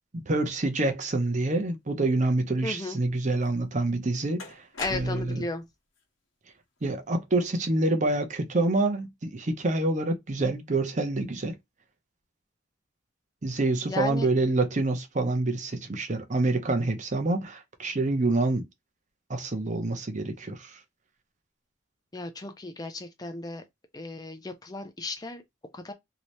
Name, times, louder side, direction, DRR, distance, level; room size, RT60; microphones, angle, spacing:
voice 1, 0.1-5.4 6.8-11.6 13.4-18.6 19.3-20.8, right 2 dB, 35° right, 0.6 m, -27 dB
voice 2, 2.6-3.0 4.8-5.6 13.9-14.3 22.1-23.6 23.9-25.4 25.7-25.9, left 2 dB, 20° left, 0.4 m, -35 dB
sound 1, 3.4-3.5 4.4-5.5, left 3 dB, 70° left, 1.1 m, -39 dB
3.1 x 2.8 x 2.6 m
head